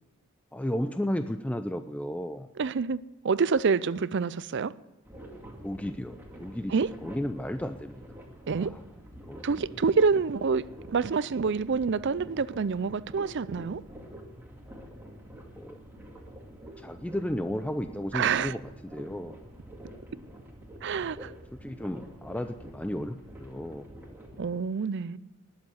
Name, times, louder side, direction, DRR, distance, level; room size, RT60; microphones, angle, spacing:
voice 1, 0.5-2.5 5.6-8.0 8.5-8.8 9.2-9.6 15.6-15.8 16.8-18.6 18.9-19.5 21.5-24.5, left 1 dB, 5° left, 0.4 m, -34 dB
voice 2, 2.6-4.7 6.7-6.9 8.5-8.8 9.4-13.8 18.1-18.5 20.8-21.3 24.4-25.2, right 5 dB, 55° right, 0.5 m, -27 dB
sound 1, 5.0-24.5, equal, 10° right, 2.1 m, -47 dB
19.5 x 7.3 x 7.9 m
head